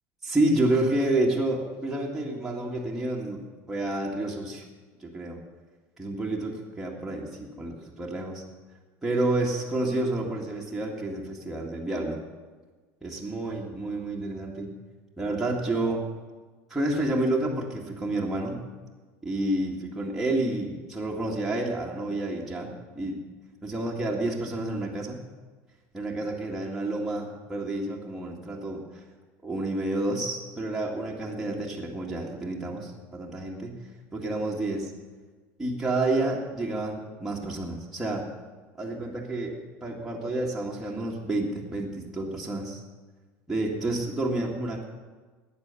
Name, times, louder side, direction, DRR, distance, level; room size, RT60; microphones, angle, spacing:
voice 1, 0.2-3.4 3.7-4.6 5.0-5.4 6.0-8.4 9.0-12.2 13.0-14.7 15.2-16.0 16.7-18.6 19.2-23.2 23.6-25.2 25.9-29.0 29.4-33.7 34.1-34.9 35.6-38.3 38.8-42.8 43.5-44.8, right 2 dB, 5° right, -4 dB, 1.8 m, -29 dB
13.0 x 9.2 x 6.9 m, 1.3 s
cardioid pair, 150°, 7 cm